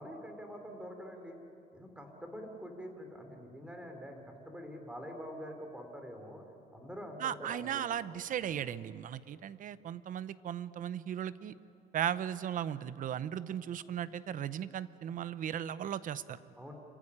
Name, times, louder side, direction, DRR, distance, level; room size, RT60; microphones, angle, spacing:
voice 1, 0.0-1.4 1.7-6.4 6.7-7.8 16.6-16.7, equal, 5° right, 4 dB, 3.7 m, -45 dB
voice 2, 7.2-11.5 11.9-16.4, right 10 dB, 50° right, 16 dB, 0.8 m, -37 dB
26.5 x 15.5 x 9.9 m, 2.8 s
cardioid pair, 110°, 17 cm